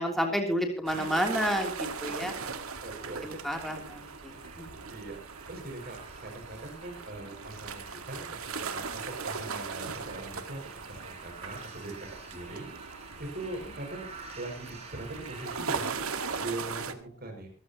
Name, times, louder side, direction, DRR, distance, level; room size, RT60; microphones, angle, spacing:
voice 1, 0.0-2.3 3.2-4.9, equal, ahead, 2 dB, 3.0 m, -31 dB
sound 1, 0.9-16.9, right 5 dB, 85° right, 1.7 m, -39 dB
sound 2, 1.9-15.6, right 4 dB, 30° right, 5.0 m, -50 dB
voice 2, 2.8-3.3 4.9-5.2 5.5-12.7 13.2-14.1 14.4-15.9 16.3-17.5, right 2 dB, 45° right, 4 dB, 6.0 m, -41 dB
25.0 x 15.0 x 2.9 m, 0.39 s
head